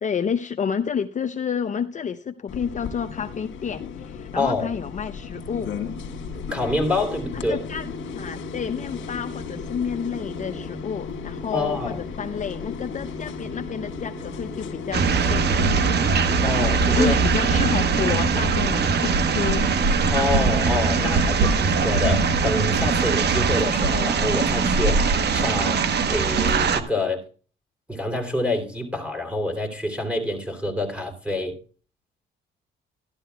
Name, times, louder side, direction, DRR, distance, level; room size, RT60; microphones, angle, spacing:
voice 1, 0.0-5.7 7.3-15.9 16.9-19.6 21.0-21.1, left 7 dB, 40° left, 0.6 m, -30 dB
sound 1, 2.5-18.5, left 7 dB, 80° left, 1.4 m, -36 dB
voice 2, 4.3-4.7 6.5-7.6 11.5-11.9 16.4-17.1 20.1-25.8 26.1-27.2 27.9-31.5, left 2 dB, 5° right, 3.1 m, -27 dB
sound 2, 5.4-22.6, right 1 dB, 85° right, 5.6 m, -39 dB
sound 3, 14.9-26.8, right 5 dB, 55° right, 1.0 m, -21 dB
13.0 x 12.0 x 2.3 m
cardioid pair, 90°, 20 cm